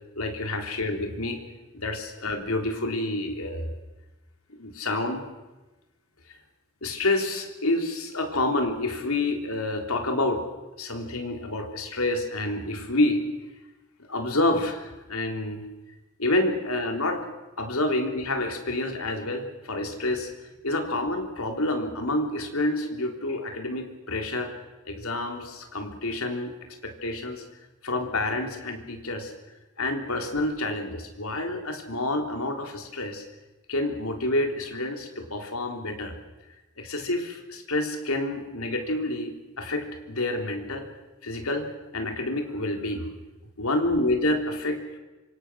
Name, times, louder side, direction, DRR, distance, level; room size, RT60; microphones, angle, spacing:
voice 1, 0.2-1.4 1.7-3.7 4.5-5.2 6.8-10.4 10.8-13.2 14.1-15.6 16.2-17.3 17.6-20.3 20.6-24.5 24.9-26.5 26.8-27.4 27.8-29.3 29.8-33.2 33.7-36.1 36.8-40.9 41.2-43.1 43.6-44.8, left 2 dB, 80° left, 3 dB, 3.6 m, -28 dB
26.5 x 24.5 x 6.4 m, 1.1 s
head